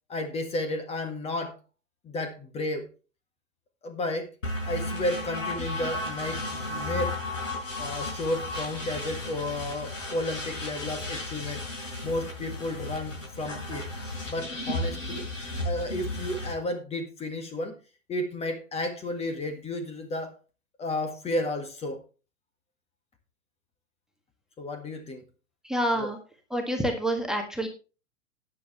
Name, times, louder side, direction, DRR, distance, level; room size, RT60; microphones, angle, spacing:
voice 1, 0.1-1.6 2.0-2.9 3.8-4.3 4.6-7.1 7.8-11.6 12.0-13.9 14.3-15.2 15.6-17.7 18.1-20.3 20.8-22.0 24.6-25.2 26.0-26.1, left 1 dB, 15° left, 8 dB, 1.7 m, -32 dB
sound 1, 4.4-16.5, left 2 dB, 80° left, 5.0 m, -34 dB
voice 2, 25.6-26.2 26.5-27.7, right 1 dB, ahead, 4 dB, 1.6 m, -27 dB
12.5 x 9.6 x 3.2 m, 0.32 s
figure-of-eight pair, 105°, 38 cm